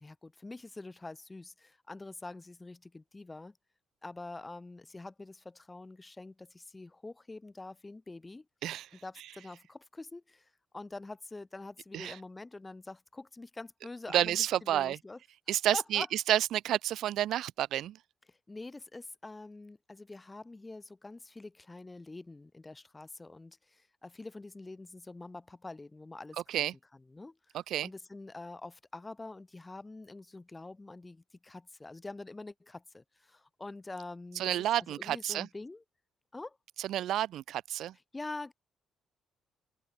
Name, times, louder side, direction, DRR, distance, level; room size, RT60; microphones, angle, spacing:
voice 1, 0.0-3.6 4.0-8.5 9.0-15.2 15.7-16.1 18.3-26.6 27.1-34.5 34.8-35.8 36.3-36.6 38.1-38.5, left 2 dB, 20° left, 4.1 m, -45 dB
voice 2, 14.1-15.0 15.5-18.0 26.5-26.7 27.5-27.9 34.4-35.5 36.8-37.9, right 12 dB, 80° right, 2.7 m, -30 dB
open air
cardioid pair, 90°, 0 cm